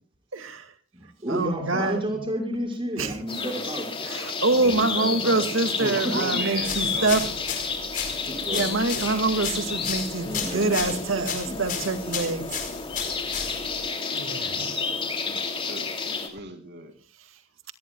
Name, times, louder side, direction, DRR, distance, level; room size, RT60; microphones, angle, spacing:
voice 1, 0.3-0.7 1.3-2.2 3.0-3.2 4.0-7.3 8.5-12.5 14.1-14.7, right 3 dB, 90° right, 2.1 m, -26 dB
voice 2, 0.9-4.1 4.6-5.4 5.8-6.2 8.3-8.7 10.2-11.1 11.5-11.6 14.5-15.4, right 1 dB, 25° right, 5.7 m, -32 dB
sound 1, 3.3-16.3, left 4 dB, 30° left, 3.1 m, -31 dB
voice 3, 5.8-7.2 15.7-17.0, right 2 dB, 55° right, 2.7 m, -34 dB
sound 2, 6.6-13.9, left 7 dB, 45° left, 4.7 m, -34 dB
26.5 x 18.0 x 2.3 m
head